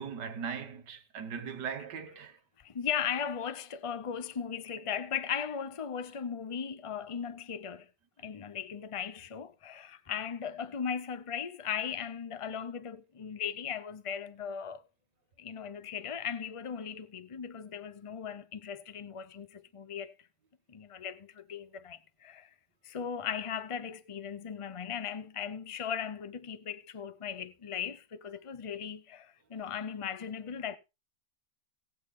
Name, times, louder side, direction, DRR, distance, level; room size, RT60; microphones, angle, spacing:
voice 1, 0.0-2.4, right 6 dB, 65° right, 1.9 m, -39 dB
voice 2, 2.6-7.9 8.2-14.8 15.4-20.1 20.7-22.5 22.8-30.8, left 7 dB, 40° left, 0.4 m, -37 dB
18.5 x 8.5 x 3.8 m
omnidirectional pair, 2.0 m